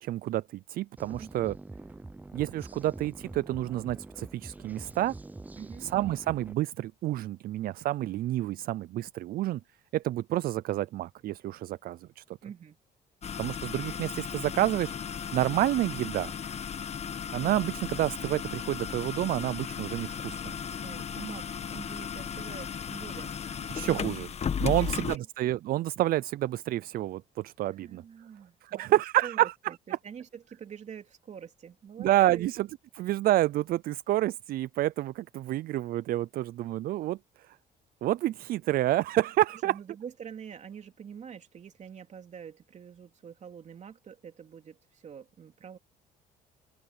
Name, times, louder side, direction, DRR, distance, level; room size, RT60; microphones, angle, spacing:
voice 1, 0.0-1.5 2.3-5.1 5.8-9.6 9.9-12.4 13.4-14.9 15.3-16.3 17.3-20.5 23.7-24.3 24.6-28.0 28.6-29.5 32.0-32.7 33.0-37.2 38.0-39.7, right 15 dB, 60° right, 0.4 m, -29 dB
sound 1, 1.0-6.5, right 2 dB, 10° right, 0.6 m, -45 dB
voice 2, 5.6-5.9 12.4-12.8 20.8-23.3 23.6-23.9 24.6-25.3 27.7-32.5 39.6-45.8, right 7 dB, 45° right, 3.0 m, -45 dB
sound 2, 13.2-25.2, left 7 dB, 40° left, 1.3 m, -35 dB
open air
cardioid pair, 110°, 17 cm